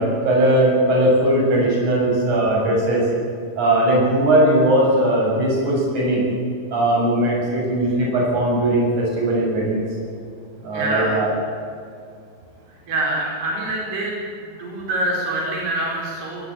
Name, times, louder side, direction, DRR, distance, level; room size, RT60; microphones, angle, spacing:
voice 1, 0.0-3.1 3.6-6.3 6.7-9.9 10.6-11.3, right 1 dB, 50° right, -2 dB, 8.8 m, -19 dB
voice 2, 10.7-11.2 12.9-14.2 14.5-16.4, right 1 dB, 90° right, -2 dB, 6.8 m, -25 dB
21.0 x 20.5 x 8.9 m, 2.4 s
omnidirectional pair, 4.5 m